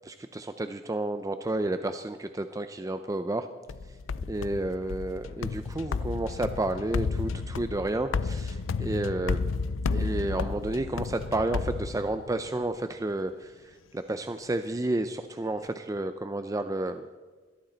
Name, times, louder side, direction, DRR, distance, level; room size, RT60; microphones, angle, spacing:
voice 1, 0.1-3.5 4.3-9.4 9.9-13.5 13.9-17.1, right 2 dB, 20° right, 9 dB, 0.5 m, -31 dB
sound 1, 3.7-12.5, left 4 dB, 90° left, 0.5 m, -32 dB
21.0 x 13.0 x 4.0 m, 1.4 s
head